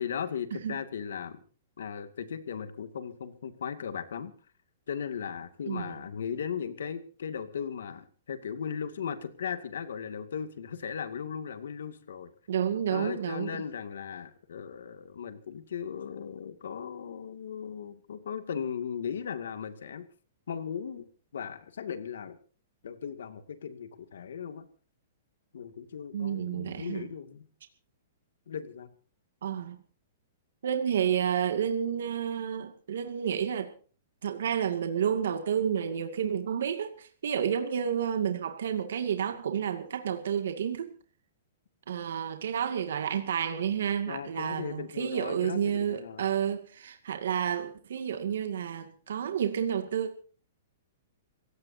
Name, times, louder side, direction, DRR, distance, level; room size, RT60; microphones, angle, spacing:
voice 1, 0.0-1.4 1.8-4.3 4.9-12.3 12.9-20.1 20.5-21.0 21.3-22.4 22.8-24.7 25.5-27.5 28.5-28.9 44.1-46.3, left 7 dB, 85° left, 2.2 m, -37 dB
voice 2, 5.7-6.0 12.5-13.6 26.1-27.1 29.4-29.8 30.6-33.7 34.2-40.9 41.9-50.2, right 8 dB, 75° right, 2.2 m, -30 dB
27.5 x 16.5 x 2.8 m
hypercardioid pair, 170°, 0 cm